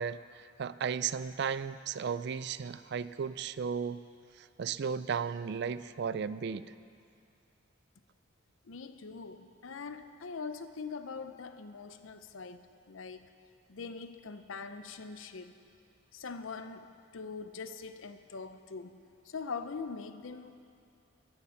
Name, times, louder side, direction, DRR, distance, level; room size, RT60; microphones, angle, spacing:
voice 1, 0.0-4.0 4.4-6.7, right 6 dB, 55° right, 15 dB, 0.4 m, -35 dB
voice 2, 8.6-13.3 13.7-15.5 16.1-20.5, left 4 dB, 85° left, 10 dB, 0.7 m, -43 dB
14.5 x 11.0 x 5.7 m, 2.5 s
head